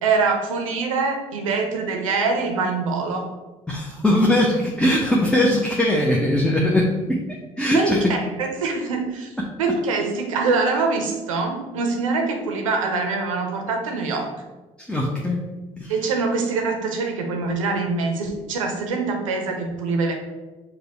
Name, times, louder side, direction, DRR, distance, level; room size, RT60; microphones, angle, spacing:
voice 1, 0.0-3.3 7.7-9.3 9.6-14.3 15.9-20.1, right 4 dB, 90° right, 3 dB, 0.6 m, -24 dB
voice 2, 3.7-7.2 7.6-8.2 9.4-9.5 14.8-15.5 15.8-15.9, left 1 dB, 5° left, -3 dB, 0.8 m, -20 dB
5.1 x 2.3 x 4.6 m, 1.2 s
hypercardioid pair, 50°, 16 cm